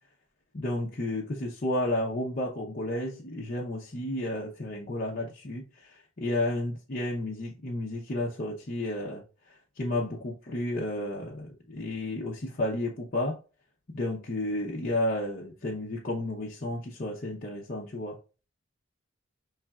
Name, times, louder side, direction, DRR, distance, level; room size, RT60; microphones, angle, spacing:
voice 1, 0.5-9.2 9.8-13.4 13.9-18.2, left 1 dB, 45° left, 0.7 m, -32 dB
5.8 x 3.2 x 2.4 m
head